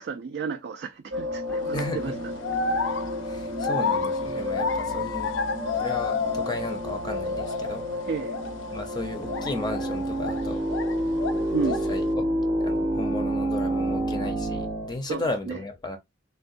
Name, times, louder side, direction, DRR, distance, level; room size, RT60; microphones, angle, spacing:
voice 1, 0.0-2.3 8.1-8.4 11.5-11.8 15.1-15.6, right 5 dB, 60° right, 0.4 m, -32 dB
sound 1, 1.1-14.7, left 2 dB, 80° right, 1.1 m, -34 dB
sound 2, 1.5-1.8 2.4-6.8 7.0-7.8 8.2-8.5 9.3-10.9 11.2-12.0, left 5 dB, 90° left, 0.4 m, -30 dB
sound 3, 1.5-14.9, right 1 dB, 25° right, 0.6 m, -31 dB
voice 2, 1.7-2.2 3.2-5.3 5.8-8.1 8.7-10.6 11.6-12.3 12.6-16.0, left 2 dB, 20° left, 0.5 m, -34 dB
3.6 x 2.2 x 2.5 m
head